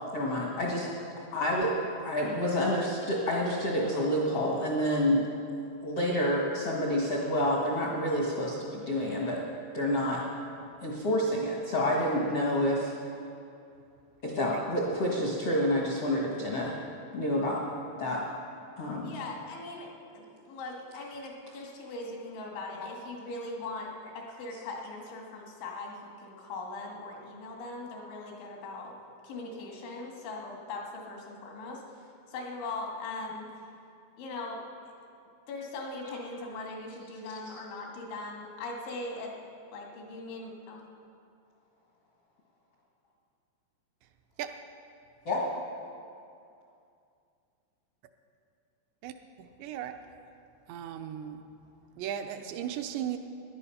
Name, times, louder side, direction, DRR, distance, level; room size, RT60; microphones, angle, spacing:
voice 1, 0.1-0.9 1.3-1.7 2.0-5.2 5.8-9.4 9.7-10.2 10.8-12.9 14.2-16.7 17.1-17.6 18.0-18.2 18.8-19.2 45.2-45.4, equal, 70° left, -3 dB, 1.4 m, -28 dB
voice 2, 19.0-29.0 29.2-33.5 34.2-34.6 35.5-39.3 39.7-40.8, left 2 dB, 85° left, 0 dB, 4.4 m, -40 dB
voice 3, 49.4-50.0 50.7-51.4 52.0-53.2, right 10 dB, 80° right, 7 dB, 2.9 m, -36 dB
18.0 x 11.0 x 5.7 m, 2.5 s
omnidirectional pair, 5.2 m